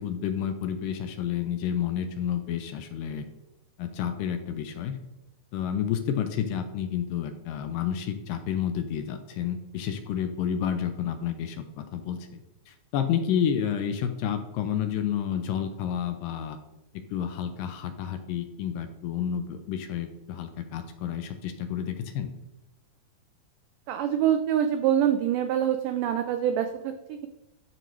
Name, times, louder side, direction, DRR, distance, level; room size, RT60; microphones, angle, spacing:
voice 1, 0.0-3.3 3.8-5.0 5.5-12.4 12.7-16.6 17.1-22.3, left 9 dB, 80° left, 8 dB, 2.1 m, -30 dB
voice 2, 23.9-27.3, right 10 dB, 90° right, 7 dB, 1.8 m, -25 dB
12.5 x 4.6 x 3.0 m, 0.96 s
omnidirectional pair, 4.2 m